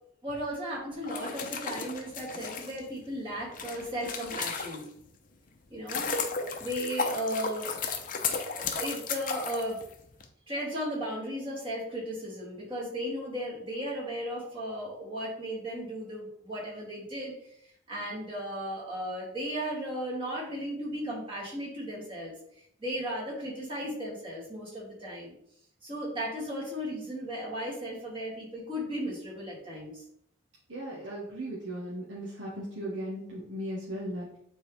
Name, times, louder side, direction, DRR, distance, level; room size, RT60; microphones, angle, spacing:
voice 1, 0.2-4.8 5.7-6.1 6.6-9.8 10.5-25.3 25.8-30.0, equal, 25° right, -5 dB, 2.5 m, -36 dB
sound 1, 1.0-5.1 5.6-10.3, left 5 dB, 45° left, 0.7 m, -34 dB
voice 2, 30.7-34.3, equal, 70° right, -6 dB, 1.4 m, -37 dB
8.6 x 4.0 x 3.3 m, 0.70 s
head